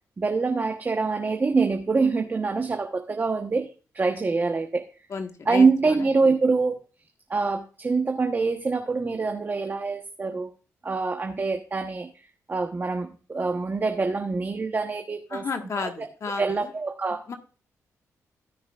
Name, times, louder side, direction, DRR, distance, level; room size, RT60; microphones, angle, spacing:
voice 1, 0.2-3.7 3.9-4.8 5.4-6.8 7.3-10.5 10.8-12.1 12.5-15.5 15.8-16.1 16.4-17.2, right 4 dB, 30° right, 5 dB, 1.1 m, -25 dB
voice 2, 5.1-6.0 15.3-16.7 17.3-17.4, left 4 dB, 55° left, 5 dB, 1.5 m, -32 dB
17.5 x 6.2 x 2.5 m, 0.37 s
cardioid pair, 70°, 6 cm